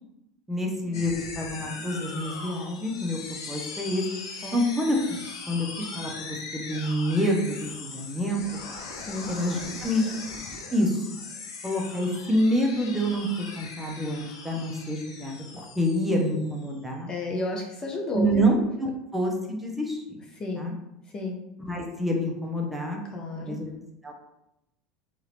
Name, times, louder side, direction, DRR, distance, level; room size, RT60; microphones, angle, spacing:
voice 1, 0.5-3.2 3.5-4.1 4.5-8.4 9.3-10.1 10.7-11.0 11.6-17.1 18.1-20.2 20.5-20.7 21.6-23.0 23.4-23.7 24.0-24.1, equal, 5° right, 0 dB, 0.8 m, -27 dB
sound 1, 0.9-16.7, left 4 dB, 85° left, 0.5 m, -40 dB
voice 2, 17.1-18.5 20.3-20.7 21.1-21.4 23.1-23.6, left 2 dB, 30° left, 0 dB, 0.5 m, -32 dB
2.7 x 2.5 x 3.3 m, 0.86 s
hypercardioid pair, 95°, 3 cm